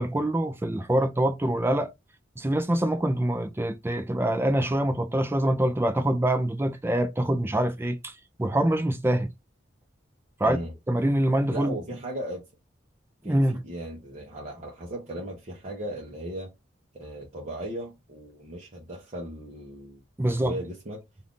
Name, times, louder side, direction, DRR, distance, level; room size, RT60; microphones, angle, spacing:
voice 1, 0.0-1.9 2.4-9.3 10.4-10.6 10.9-11.7 13.2-13.6 20.2-20.5, right 1 dB, 10° right, 0.4 m, -25 dB
voice 2, 10.4-10.7 11.5-12.4 13.2-16.5 16.9-21.0, right 1 dB, 40° right, 0.8 m, -37 dB
2.7 x 2.4 x 3.5 m
head